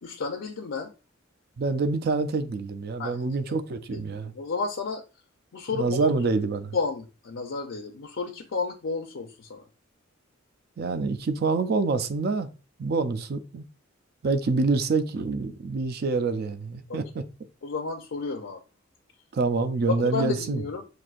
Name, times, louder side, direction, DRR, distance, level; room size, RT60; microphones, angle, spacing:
voice 1, 0.0-0.9 3.0-3.3 3.9-5.0 5.5-6.1 6.7-9.6 16.9-17.0 17.6-18.6 19.9-20.8, left 4 dB, 65° left, 0.5 m, -32 dB
voice 2, 1.6-4.3 5.7-6.8 10.8-12.5 12.8-13.6 14.2-17.2 19.3-20.6, right 3 dB, 50° right, 0.4 m, -26 dB
5.9 x 2.6 x 2.4 m
head